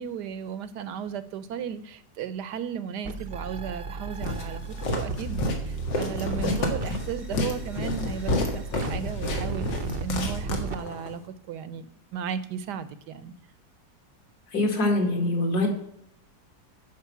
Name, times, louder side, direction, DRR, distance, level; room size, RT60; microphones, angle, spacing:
voice 1, 0.0-11.2 11.5-11.9 12.1-13.3, right 7 dB, 70° right, 15 dB, 1.3 m, -35 dB
sound 1, 3.0-10.8, right 4 dB, 45° right, 0.7 m, -35 dB
Walk footsteps, 4.2-11.1, left 2 dB, 80° left, 2.5 m, -30 dB
voice 2, 14.5-15.7, left 2 dB, 60° left, 2 dB, 2.8 m, -24 dB
11.0 x 5.3 x 7.1 m, 0.73 s
omnidirectional pair, 1.9 m